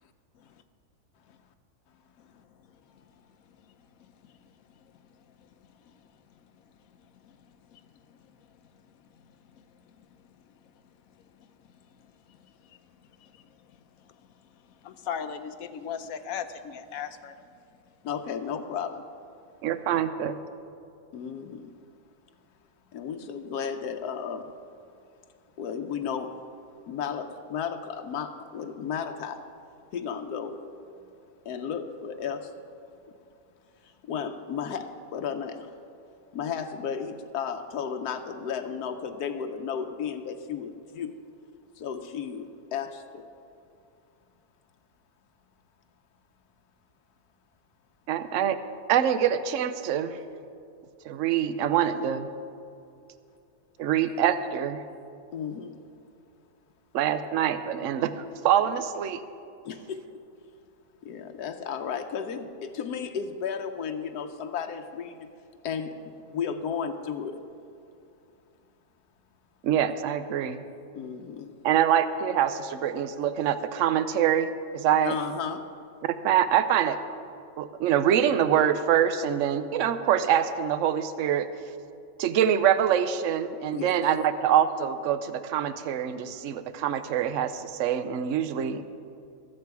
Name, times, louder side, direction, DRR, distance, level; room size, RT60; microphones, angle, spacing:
voice 1, 2.2-10.6 11.1-17.4, left 7 dB, 70° left, 1.1 m, -43 dB
voice 2, 18.0-19.0 21.1-21.7 22.9-24.5 25.6-26.4 26.9-29.4 29.9-30.7 31.4-32.6 33.8-35.7 36.3-41.1 41.7-43.3 55.3-55.8 59.6-60.1 61.0-65.3 65.6-67.4 70.9-71.5 75.0-75.7 83.7-84.0, left 7 dB, 90° left, 1.3 m, -34 dB
voice 3, 19.6-20.3 48.1-48.6 48.9-50.2 51.1-52.3 53.8-54.8 56.9-58.1 58.4-59.2 69.6-70.6 71.6-75.1 76.2-77.0 77.6-81.5 82.2-88.8, right 9 dB, 60° right, 0.9 m, -25 dB
22.5 x 7.6 x 4.7 m
omnidirectional pair, 1.6 m